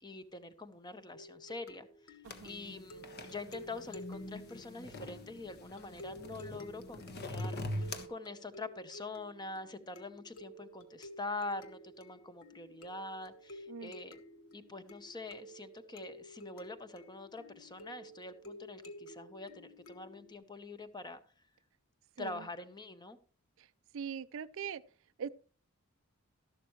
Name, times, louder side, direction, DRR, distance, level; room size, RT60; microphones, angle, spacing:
voice 1, 0.0-2.2 2.4-14.2 14.5-21.2 22.2-23.2, left 2 dB, 20° left, 0.9 m, -45 dB
sound 1, 1.1-20.3, left 1 dB, 65° left, 1.3 m, -52 dB
sound 2, 2.2-8.1, left 1 dB, 50° left, 1.4 m, -43 dB
voice 2, 23.9-24.8 25.2-25.3, right 7 dB, 60° right, 0.4 m, -41 dB
13.0 x 11.5 x 3.1 m
head